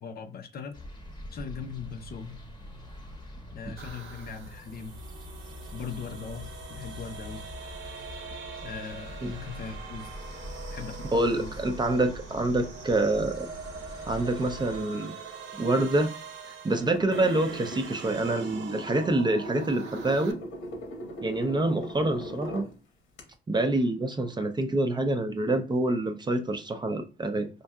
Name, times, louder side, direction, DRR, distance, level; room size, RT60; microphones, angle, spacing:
voice 1, 0.0-0.8 1.3-2.4 3.5-4.9 5.7-7.4 8.6-10.1 10.7-11.5, left 6 dB, 50° left, 0.6 m, -39 dB
sound 1, 0.7-14.8, left 1 dB, 20° left, 0.8 m, -44 dB
sound 2, 3.8-20.3, right 5 dB, 70° right, 0.7 m, -43 dB
voice 2, 11.1-13.5 14.1-15.1 15.6-16.1 16.6-20.4 21.2-22.6 23.5-27.5, right 2 dB, 20° right, 0.4 m, -26 dB
sound 3, 16.8-22.7 23.2-23.3, equal, 85° left, 1.0 m, -39 dB
4.4 x 2.6 x 2.2 m
cardioid pair, 90°, 20 cm